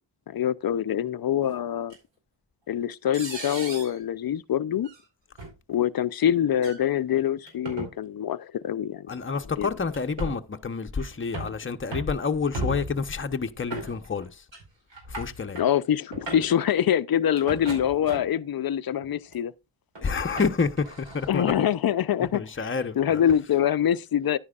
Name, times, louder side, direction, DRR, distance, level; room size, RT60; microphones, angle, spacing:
voice 1, 0.3-1.9 2.7-4.9 5.7-9.1 9.6-9.7 15.5-19.5 21.3-24.4, left 10 dB, 50° left, 0.6 m, -25 dB
sound 1, 1.9-2.0 3.1-4.0 4.8-5.0 5.4-5.5 6.5-6.8 7.5-7.9 9.1-9.2 9.9-10.4 11.0-11.6 11.9-12.2 12.5-13.0 13.7-14.2 14.5-14.6 14.9-15.7 16.1-16.6 17.4-18.4 19.0-19.4 20.0-21.3, right 2 dB, 70° right, 4.6 m, -36 dB
voice 2, 9.1-14.4 15.1-15.6 20.0-21.5 22.3-23.2, left 5 dB, 25° left, 0.9 m, -29 dB
10.5 x 9.5 x 2.4 m
wide cardioid pair, 90°, 46 cm